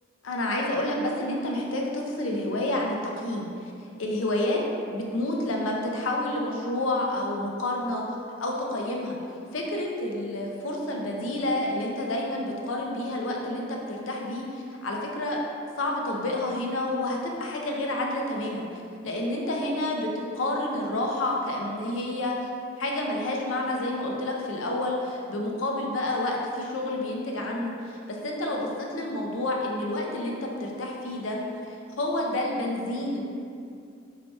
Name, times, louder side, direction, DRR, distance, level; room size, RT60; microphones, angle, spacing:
voice 1, 0.2-3.5 4.0-4.6 4.9-8.0 8.4-9.2 9.5-15.4 15.8-18.7 19.0-22.3 22.8-27.7 28.1-31.4 31.7-33.2, left 1 dB, 85° left, -1 dB, 0.6 m, -29 dB
4.4 x 2.8 x 3.2 m, 2.4 s
head